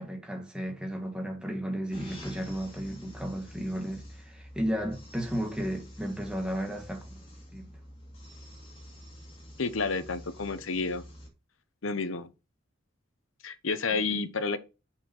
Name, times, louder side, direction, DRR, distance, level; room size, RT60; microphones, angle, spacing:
voice 1, 0.0-7.7 13.9-14.2, equal, 5° right, 1.6 m, -34 dB
sound 1, 1.9-11.3, equal, 30° left, 2.8 m, -48 dB
voice 2, 9.6-11.0 11.8-12.3 13.4-14.6, left 4 dB, 80° left, 0.9 m, -30 dB
7.1 x 5.7 x 4.4 m
head